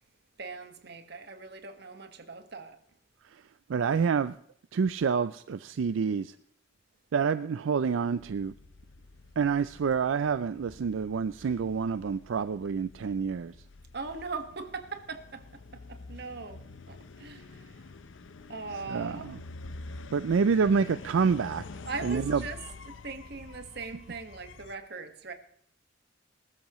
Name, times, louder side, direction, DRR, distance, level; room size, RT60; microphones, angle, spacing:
voice 1, 0.4-2.8 13.9-17.9 18.5-19.3 21.8-22.6 22.8-25.3, right 4 dB, 60° right, 1.6 m, -40 dB
voice 2, 3.7-4.4 4.7-6.3 7.1-8.5 9.4-13.5 18.9-19.4 20.1-21.6 22.0-22.4, right 5 dB, 85° right, 0.4 m, -27 dB
sound 1, 8.2-24.8, left 3 dB, 85° left, 0.7 m, -47 dB
20.0 x 13.0 x 3.1 m
head